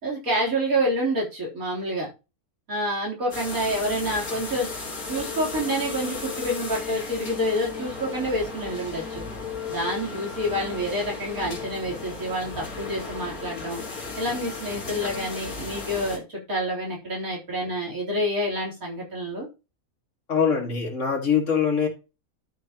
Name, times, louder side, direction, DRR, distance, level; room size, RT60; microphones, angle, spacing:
voice 1, 0.0-2.1 2.7-4.7 5.1-9.2 9.7-13.8 14.2-19.5, equal, 75° right, 4.2 m, -28 dB
sound 1, 3.3-16.2, left 4 dB, 85° left, 2.4 m, -35 dB
voice 2, 20.3-21.9, left 6 dB, 60° left, 2.3 m, -23 dB
11.5 x 6.3 x 3.0 m
omnidirectional pair, 1.5 m